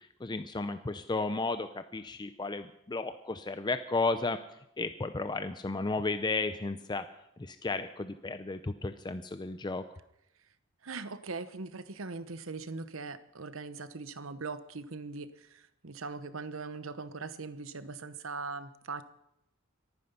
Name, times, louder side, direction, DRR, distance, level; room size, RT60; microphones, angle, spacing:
voice 1, 0.0-4.4 4.8-7.1 7.4-9.8, left 3 dB, 20° left, 10 dB, 0.5 m, -33 dB
voice 2, 10.8-19.0, right 4 dB, 75° right, 13 dB, 1.0 m, -40 dB
23.5 x 9.5 x 5.5 m, 0.81 s
head